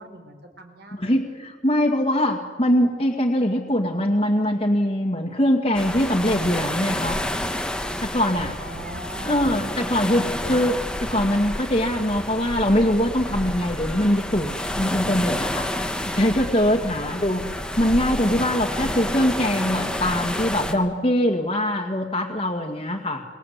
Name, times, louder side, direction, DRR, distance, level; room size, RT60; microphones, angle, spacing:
voice 1, 0.0-1.2 8.6-10.0 20.7-20.9, right 2 dB, 60° right, 6 dB, 4.7 m, -41 dB
voice 2, 0.9-7.2 8.0-8.6 9.2-15.7 16.1-23.2, equal, 30° left, 0 dB, 2.1 m, -22 dB
sound 1, 5.7-20.7, left 1 dB, 5° left, 1.6 m, -29 dB
28.0 x 22.0 x 8.3 m, 1.4 s
head